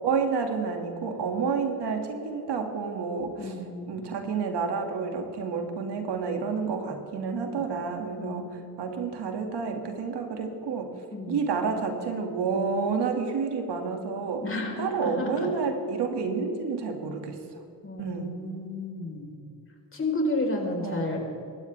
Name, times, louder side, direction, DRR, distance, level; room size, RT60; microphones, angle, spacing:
voice 1, 0.0-3.5 3.9-8.4 8.8-10.9 11.3-14.4 14.8-17.4 18.0-18.4 20.8-21.1, right 5 dB, 70° right, 4 dB, 2.2 m, -29 dB
voice 2, 3.4-3.9 7.5-7.6 8.2-8.8 11.1-11.4 14.4-15.5 17.8-19.4 19.9-21.2, left 2 dB, 30° left, 1 dB, 4.2 m, -32 dB
25.5 x 12.5 x 3.4 m, 2.7 s
cardioid pair, 80°, 42 cm